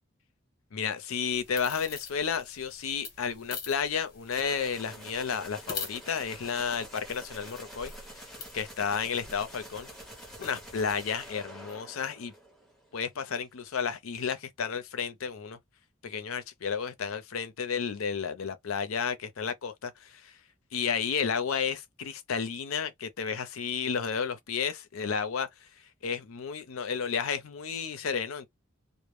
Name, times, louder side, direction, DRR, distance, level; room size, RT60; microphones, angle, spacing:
voice 1, 0.7-7.9 8.5-9.9 10.4-12.3 12.9-15.6 16.0-20.3 20.7-25.5 26.0-28.5, left 6 dB, 85° left, 0.5 m, -32 dB
sound 1, 1.3-11.3, left 5 dB, 45° left, 1.0 m, -46 dB
sound 2, 4.3-12.9, right 1 dB, ahead, 0.9 m, -47 dB
2.1 x 2.1 x 3.1 m
head